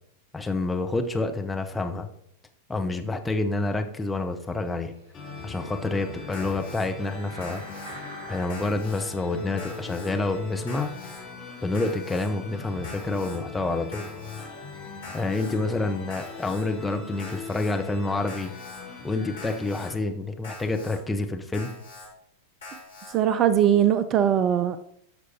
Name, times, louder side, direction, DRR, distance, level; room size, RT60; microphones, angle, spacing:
voice 1, 0.3-2.1 2.7-4.9 5.4-7.9 8.3-10.9 11.6-14.1 15.1-18.5 19.0-21.7, left 2 dB, 10° left, 5 dB, 0.8 m, -28 dB
sound 1, 4.2-8.8 9.4-9.5, right 2 dB, 55° right, 3.4 m, -47 dB
sound 2, 5.1-19.9, left 4 dB, 25° left, 3.2 m, -40 dB
Alarm, 6.3-6.9 7.4-7.9 8.5-9.0 9.6-10.1 10.7-11.2 11.7-12.3 12.8-13.4 13.9-14.5 15.0-15.6 16.1-16.6 17.2-17.7 18.3-18.8 19.4-19.9 20.4-21.0 21.5-22.1 22.6-23.1, left 2 dB, 70° left, 3.1 m, -43 dB
voice 2, 23.1-24.8, right 9 dB, 30° right, 13 dB, 0.4 m, -20 dB
12.5 x 6.2 x 2.8 m, 0.72 s
figure-of-eight pair, 90°, 0 cm